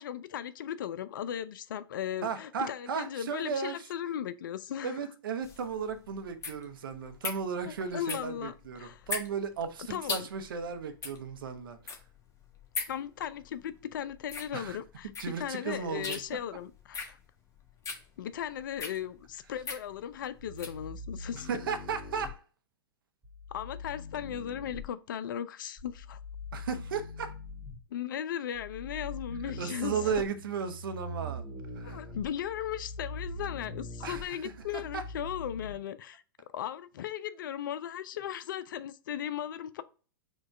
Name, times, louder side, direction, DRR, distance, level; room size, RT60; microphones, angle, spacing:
voice 1, 0.0-5.0 7.7-9.1 9.9-10.3 12.9-17.2 18.2-21.5 23.5-26.2 27.9-30.2 31.8-36.2 36.5-39.8, left 10 dB, 60° left, 0.4 m, -37 dB
voice 2, 2.2-3.9 4.8-12.0 14.5-14.8 15.2-16.2 21.3-22.4 26.5-27.3 29.6-31.4 31.8-32.0 34.0-34.2 34.7-35.0, right 6 dB, 65° right, 0.6 m, -35 dB
sound 1, 5.4-20.8, left 4 dB, 25° left, 0.9 m, -40 dB
sound 2, 20.4-22.3 23.2-24.9 25.8-27.8 28.5-35.8, left 1 dB, 10° right, 1.3 m, -42 dB
4.5 x 2.3 x 4.3 m
figure-of-eight pair, 100°, 12 cm